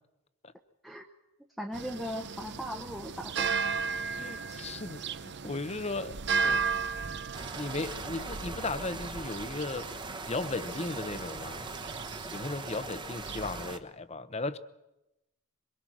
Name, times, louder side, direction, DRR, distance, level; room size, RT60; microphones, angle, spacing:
voice 1, 1.6-3.6, equal, ahead, 1 dB, 0.9 m, -38 dB
sound 1, 1.7-13.7, right 5 dB, 50° right, 0.7 m, -36 dB
voice 2, 4.2-6.6 7.6-9.9 10.2-11.7 12.3-14.6, left 3 dB, 30° left, 13 dB, 0.8 m, -36 dB
sound 2, 7.3-13.8, right 3 dB, 20° right, 1.1 m, -41 dB
23.5 x 22.5 x 6.2 m, 0.95 s
head